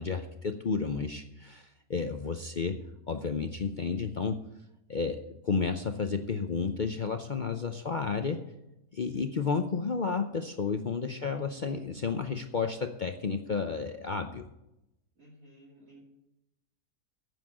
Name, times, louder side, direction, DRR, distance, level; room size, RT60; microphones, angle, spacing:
voice 1, 0.0-2.8 3.1-4.4 4.9-8.4 8.9-14.5, left 5 dB, 55° left, 6 dB, 0.5 m, -32 dB
voice 2, 2.0-2.4 7.7-8.0 9.1-9.6 11.0-11.5 15.2-16.0, right 1 dB, 60° right, -7 dB, 3.3 m, -57 dB
9.2 x 7.2 x 8.6 m, 0.88 s
omnidirectional pair, 1.6 m